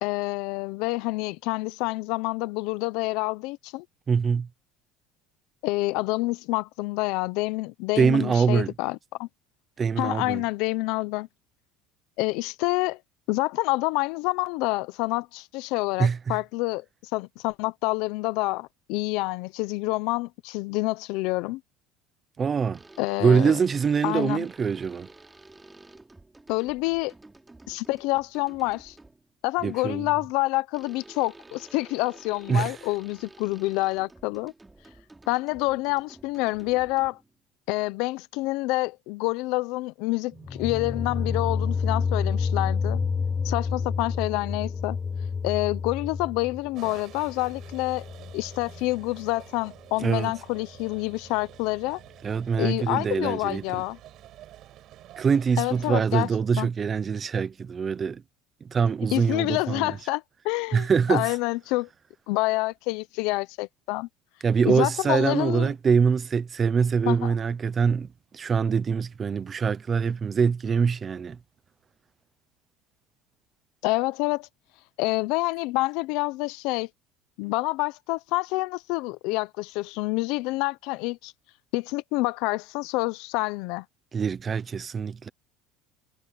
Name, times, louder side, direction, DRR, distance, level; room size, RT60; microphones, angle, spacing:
voice 1, 0.0-3.8 5.6-9.3 10.0-11.3 12.2-13.0 13.3-21.6 23.0-23.6 24.0-24.5 26.5-27.1 27.7-28.9 29.4-34.5 35.3-37.2 37.7-43.0 43.4-45.0 45.4-48.0 48.3-52.0 52.6-54.0 55.6-56.3 56.6-56.7 59.1-61.9 62.3-64.1 64.7-65.7 67.1-67.3 73.8-74.5 75.0-76.9 77.4-81.3 81.7-83.8, left 22 dB, 70° left, 0.9 m, -27 dB
voice 2, 4.1-4.5 8.0-8.7 9.8-10.4 16.0-16.4 22.4-22.8 23.2-25.1 29.6-30.1 32.5-32.7 50.0-50.3 52.2-53.8 55.2-58.2 58.6-60.0 60.7-61.3 64.4-68.1 68.3-71.4 84.1-85.3, right 6 dB, 25° right, 0.8 m, -24 dB
sound 1, 22.7-29.3 30.7-37.4, right 2 dB, 10° right, 3.2 m, -51 dB
sound 2, 40.4-49.3, left 5 dB, 20° left, 0.4 m, -29 dB
sound 3, 46.7-55.9, right 13 dB, 50° right, 6.4 m, -49 dB
cardioid pair, 140°, 0 cm